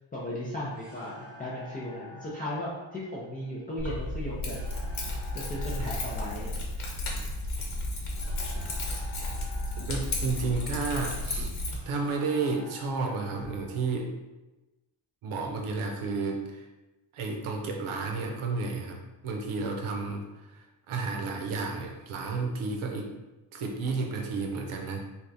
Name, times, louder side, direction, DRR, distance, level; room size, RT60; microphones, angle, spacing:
voice 1, 0.1-4.6 5.0-6.5 7.1-7.3, left 1 dB, 20° left, -8 dB, 0.4 m, -36 dB
sound 1, 0.7-13.8, left 2 dB, 10° right, 0.9 m, -50 dB
Keys jangling, 3.8-11.8, left 1 dB, 70° left, 1.1 m, -33 dB
sound 2, 8.5-9.3 9.8-10.6 11.0-11.1 11.4-12.1 13.4-14.0, right 1 dB, 35° right, 0.8 m, -46 dB
voice 2, 9.9-11.5 11.9-14.1 15.2-16.6 17.1-19.0 19.2-23.1 23.5-25.1, right 4 dB, 75° right, 2 dB, 0.8 m, -32 dB
3.4 x 2.4 x 3.9 m, 1.1 s
wide cardioid pair, 175°, 49 cm